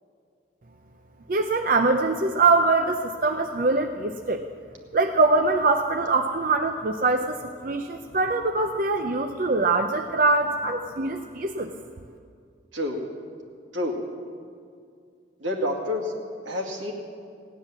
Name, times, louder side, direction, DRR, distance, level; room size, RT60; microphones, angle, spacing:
voice 1, 1.3-4.4 4.9-7.4 7.6-11.7, right 3 dB, 45° right, 5 dB, 0.5 m, -23 dB
voice 2, 15.4-16.1 16.4-16.9, left 1 dB, 85° right, 0 dB, 2.3 m, -28 dB
16.5 x 9.8 x 7.4 m, 2.3 s
head